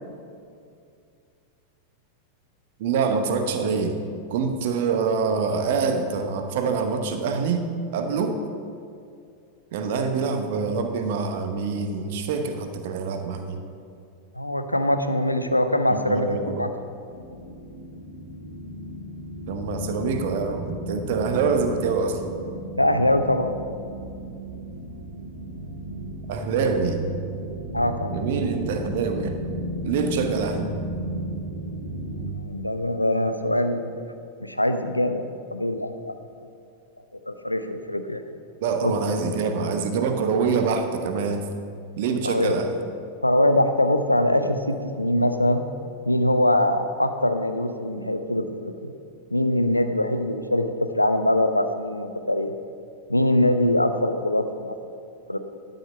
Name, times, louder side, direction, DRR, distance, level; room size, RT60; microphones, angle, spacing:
voice 1, 2.8-3.9 4.3-7.6 7.9-8.4 9.7-13.6 15.9-16.6 19.5-22.2 26.3-27.0 28.1-29.4 29.8-30.7 38.6-41.4 42.0-42.7, right 5 dB, 50° right, 6 dB, 1.0 m, -25 dB
voice 2, 14.3-16.7 22.8-23.6 27.7-28.2 32.3-33.9 34.4-36.1 37.3-38.2 38.8-38.9 42.2-42.5 43.2-45.6 46.1-48.9 49.3-52.5 53.1-54.8 55.3-55.4, left 1 dB, 85° left, 8 dB, 0.6 m, -23 dB
sound 1, 17.1-32.3, right 1 dB, 75° right, 2.2 m, -34 dB
11.5 x 6.4 x 5.6 m, 2.4 s
figure-of-eight pair, 90°, 0 cm